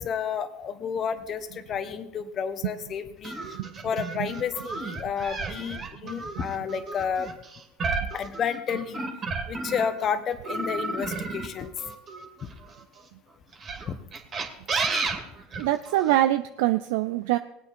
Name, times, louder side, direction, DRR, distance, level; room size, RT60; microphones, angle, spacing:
voice 1, 0.0-3.4 3.8-7.3 8.1-9.1 9.5-11.7 12.4-12.5 13.9-14.0, left 7 dB, 40° left, 10 dB, 1.2 m, -31 dB
sound 1, 3.2-10.0 10.4-12.8 13.5-16.1, right 3 dB, 35° right, 2.4 m, -32 dB
voice 2, 15.6-17.4, right 14 dB, 70° right, 10 dB, 0.5 m, -24 dB
19.5 x 8.9 x 4.4 m, 0.84 s
hypercardioid pair, 80°, 0 cm